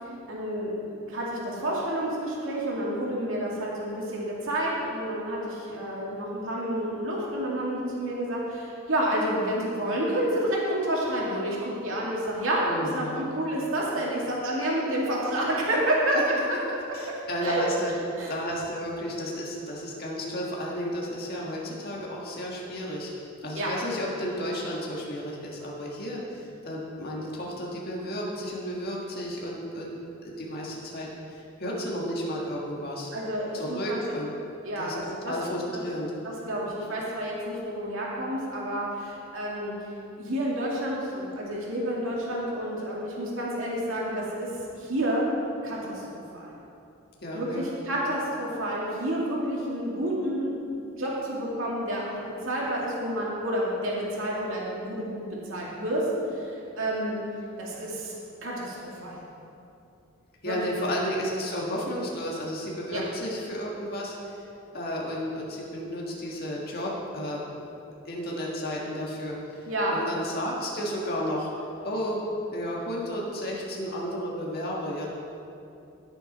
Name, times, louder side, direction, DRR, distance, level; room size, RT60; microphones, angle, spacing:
voice 1, 0.3-12.7 12.9-16.4 16.7-16.8 17.4-17.6 18.2-18.3 23.5-23.7 33.1-34.0 34.6-35.3 36.2-39.7 40.2-44.5 44.7-45.3 45.6-46.0 46.3-46.5 47.3-52.2 52.4-56.0 56.3-57.2 57.6-58.2 58.4-59.2 60.4-60.6 62.9-63.0 69.7-70.0, right 1 dB, 70° right, -4 dB, 2.4 m, -29 dB
voice 2, 12.6-13.2 16.1-16.2 16.9-17.9 18.3-23.1 23.4-30.0 30.2-33.1 33.5-34.3 34.8-34.9 35.2-36.1 47.2-47.7 60.4-64.4 64.7-67.5 68.0-69.4 69.9-71.5 71.8-72.2 72.5-75.1, equal, 45° left, -4 dB, 1.7 m, -32 dB
16.5 x 6.8 x 4.2 m, 2.7 s
head